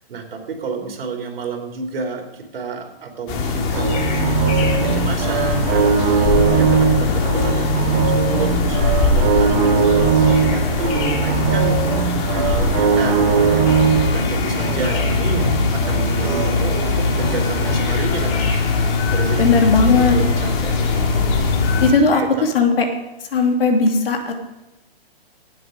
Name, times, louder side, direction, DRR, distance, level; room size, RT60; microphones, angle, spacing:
voice 1, 0.1-21.3 22.1-22.4, right 4 dB, 65° right, 3 dB, 3.5 m, -30 dB
sound 1, 3.3-21.9, left 4 dB, 30° left, 2.0 m, -20 dB
sound 2, 3.7-17.8, right 7 dB, 35° right, 1.3 m, -20 dB
voice 2, 19.4-20.1 21.8-22.2 22.5-22.8 23.3-24.3, left 4 dB, 65° left, 3 dB, 2.6 m, -16 dB
16.5 x 7.6 x 5.4 m, 0.94 s
hypercardioid pair, 150°, 31 cm